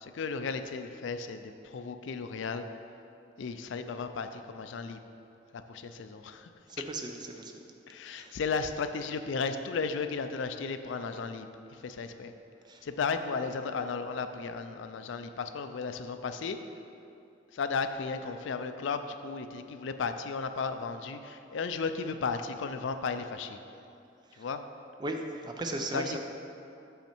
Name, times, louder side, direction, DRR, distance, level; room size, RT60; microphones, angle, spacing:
voice 1, 0.0-2.6 3.4-5.0 5.5-6.5 7.9-12.3 12.8-16.6 17.5-23.6 24.4-24.6 25.9-26.2, left 5 dB, 70° left, 9 dB, 0.4 m, -34 dB
voice 2, 6.7-7.6 8.1-8.4 12.6-12.9 24.3-24.5 25.0-26.2, right 2 dB, 20° right, 3 dB, 0.4 m, -37 dB
6.3 x 5.7 x 4.4 m, 2.7 s
head